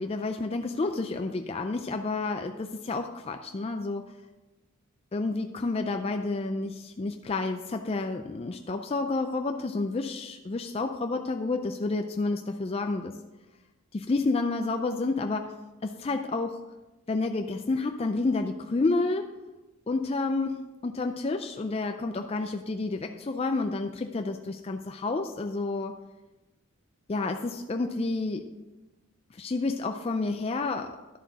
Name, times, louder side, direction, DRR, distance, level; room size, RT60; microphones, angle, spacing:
voice 1, 0.0-4.1 5.1-13.2 13.9-15.5 15.8-16.6 17.1-19.3 19.9-26.0 27.1-28.5 29.3-31.0, left 3 dB, 25° left, 6 dB, 0.3 m, -30 dB
11.5 x 7.5 x 4.0 m, 1.1 s
head